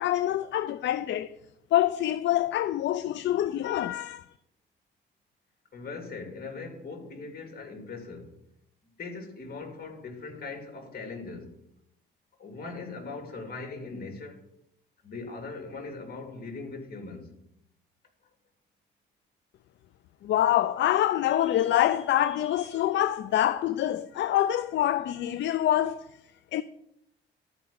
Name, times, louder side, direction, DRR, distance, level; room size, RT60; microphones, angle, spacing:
voice 1, 0.0-1.4 1.7-4.3 20.2-26.1 26.5-26.6, left 12 dB, 65° left, 0.5 m, -25 dB
voice 2, 5.7-8.3 9.0-11.5 12.4-14.4 15.0-17.3, left 3 dB, 50° left, 2.6 m, -40 dB
12.5 x 5.0 x 7.0 m
cardioid pair, 90°, 20 cm